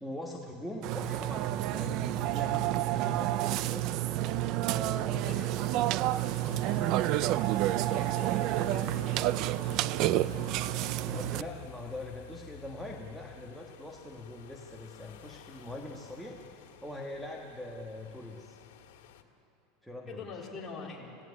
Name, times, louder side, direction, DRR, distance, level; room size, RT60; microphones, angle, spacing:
voice 1, 0.0-3.8 4.5-5.4 6.4-7.0 7.7-9.0 11.0-16.4 16.8-18.6 19.8-20.2, left 2 dB, ahead, 1 dB, 1.5 m, -42 dB
Burping eructation, 0.8-11.4, right 15 dB, 45° right, 0.5 m, -29 dB
sound 1, 1.0-19.2, left 10 dB, 85° left, 2.0 m, -51 dB
voice 2, 4.9-5.6 7.9-9.9 20.1-21.2, left 4 dB, 15° left, -3 dB, 3.9 m, -45 dB
28.5 x 17.0 x 9.8 m, 2.9 s
supercardioid pair, 160°, 0 cm